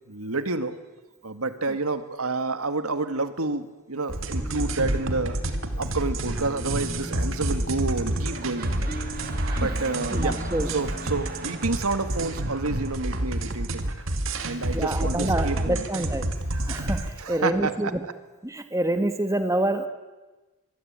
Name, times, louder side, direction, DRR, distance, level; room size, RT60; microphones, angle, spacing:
voice 1, 0.1-0.8 1.2-5.4 5.8-8.9 9.6-13.9 14.4-15.9 17.2-17.9, right 3 dB, 80° right, 10 dB, 1.9 m, -29 dB
sound 1, 4.1-17.1, right 1 dB, 60° right, 2.4 m, -29 dB
sound 2, 4.4-11.7, left 1 dB, 25° left, 1.6 m, -41 dB
sound 3, 8.0-13.8 14.5-14.6, right 4 dB, 45° right, 2.5 m, -42 dB
voice 2, 10.1-10.7 14.7-16.2 16.7-17.0 17.3-18.0 18.4-19.9, right 1 dB, 15° right, 8 dB, 1.6 m, -26 dB
25.0 x 23.5 x 8.9 m, 1.2 s
head